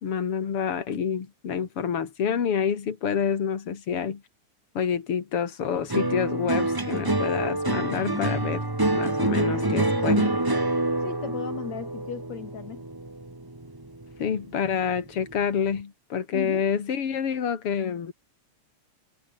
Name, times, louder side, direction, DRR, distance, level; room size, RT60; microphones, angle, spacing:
voice 1, 0.0-4.2 4.7-8.6 8.9-10.3 14.2-18.1, left 7 dB, 50° left, 3.3 m, -28 dB
sound 1, 5.9-14.4 14.7-15.3, right 2 dB, 15° right, 0.7 m, -27 dB
voice 2, 9.6-10.4 11.0-12.8 16.3-16.7, left 9 dB, 65° left, 3.1 m, -37 dB
omnidirectional pair, 3.4 m